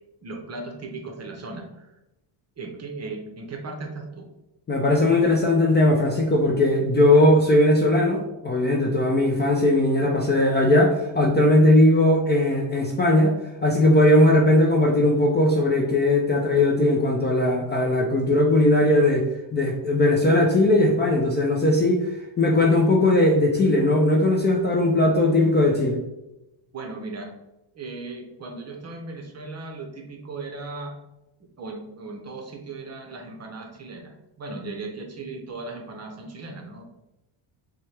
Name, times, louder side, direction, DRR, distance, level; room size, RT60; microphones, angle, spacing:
voice 1, 0.2-1.9 2.6-4.3 26.7-27.3 27.7-31.0 31.6-36.8, right 3 dB, 35° right, 3 dB, 0.7 m, -37 dB
voice 2, 4.7-13.3 13.6-19.2 19.5-22.1 22.4-26.0, left 1 dB, 20° left, -1 dB, 0.5 m, -19 dB
4.3 x 2.3 x 3.2 m, 0.91 s
cardioid pair, 115°, 48 cm